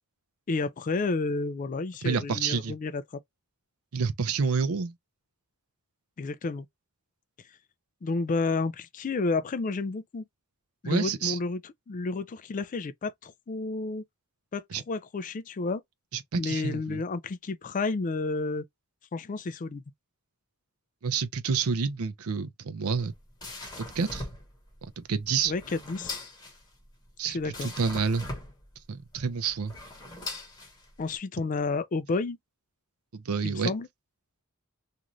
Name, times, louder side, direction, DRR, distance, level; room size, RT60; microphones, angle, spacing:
voice 1, 0.5-3.2 6.2-6.7 8.0-10.2 10.8-14.0 14.5-15.8 16.4-18.6 19.1-19.8 25.5-26.2 27.3-27.7 31.0-32.4 33.4-33.9, left 3 dB, 35° left, 0.3 m, -31 dB
voice 2, 2.0-2.7 3.9-4.9 10.8-11.4 14.7-14.8 16.1-17.0 21.0-23.1 23.8-24.3 25.0-25.5 27.2-28.3 28.9-29.7 33.1-33.7, right 5 dB, 70° right, 0.5 m, -29 dB
sound 1, 22.8-31.2, left 2 dB, 20° left, 1.0 m, -41 dB
2.6 x 2.5 x 3.0 m
head